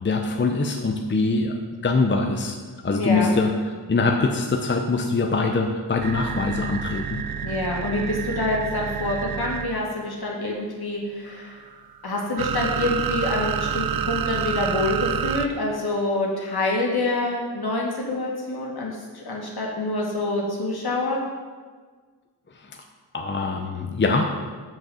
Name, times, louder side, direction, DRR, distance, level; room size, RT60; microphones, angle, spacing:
voice 1, 0.0-1.6 1.8-2.6 2.8-7.2 22.5-22.8 23.1-24.2, left 3 dB, 25° left, 3 dB, 0.6 m, -23 dB
voice 2, 2.9-3.3 7.4-11.6 12.0-21.2, left 2 dB, 60° left, -2 dB, 1.9 m, -26 dB
sound 1, 6.0-9.8 11.3-15.5, right 8 dB, 55° right, 0.5 m, -28 dB
6.3 x 5.3 x 6.9 m, 1.5 s
wide cardioid pair, 80°, 42 cm